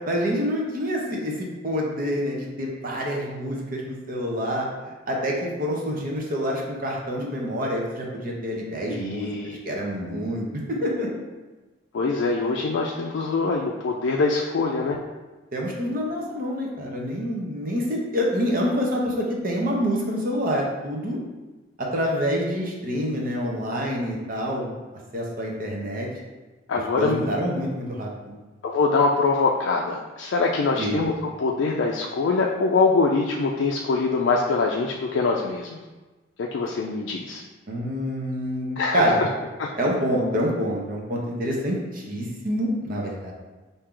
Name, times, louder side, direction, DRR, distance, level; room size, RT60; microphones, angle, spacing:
voice 1, 0.1-4.7 5.1-9.3 9.6-11.1 15.5-21.2 21.8-24.7 25.1-26.1 27.0-28.4 30.7-31.0 37.7-39.2 39.8-43.3, equal, 45° right, -1 dB, 0.8 m, -27 dB
voice 2, 8.9-9.6 11.9-15.0 26.7-27.2 28.6-35.8 36.4-37.4 38.8-39.0 39.6-39.7, left 4 dB, 70° left, -1 dB, 0.4 m, -23 dB
4.5 x 2.7 x 3.7 m, 1.2 s
head